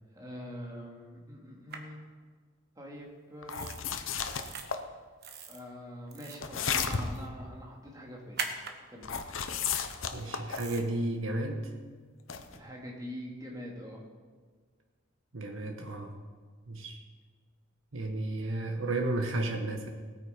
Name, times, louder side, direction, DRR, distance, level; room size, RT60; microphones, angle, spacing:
voice 1, 0.1-2.0 2.8-3.8 5.5-8.4 8.9-9.1 12.5-14.0, equal, 20° right, -1 dB, 2.4 m, -44 dB
sound 1, 1.7-1.8 3.5-3.8 4.2-4.6 5.2-5.6 6.1-6.5 8.4-8.7 10.6-10.8, right 5 dB, 50° right, 1.2 m, -39 dB
sound 2, 3.4-4.8 6.4-7.3 9.0-10.7 12.3-12.6, left 6 dB, 80° left, 0.9 m, -33 dB
voice 2, 10.1-11.7 15.3-16.1 16.7-17.0 17.9-19.9, right 2 dB, 80° right, 3 dB, 1.4 m, -33 dB
18.0 x 8.7 x 5.2 m, 1.5 s
head